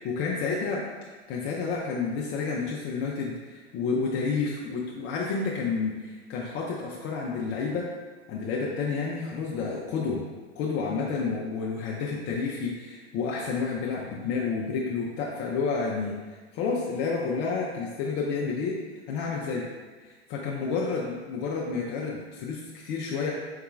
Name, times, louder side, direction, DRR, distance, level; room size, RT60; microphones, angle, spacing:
voice 1, 0.0-7.9 8.3-10.3 10.6-16.2 16.5-18.8 19.1-19.7 20.3-23.3, left 4 dB, 30° left, -3 dB, 0.5 m, -30 dB
4.0 x 3.7 x 2.4 m, 1.4 s
hypercardioid pair, 105°, 35 cm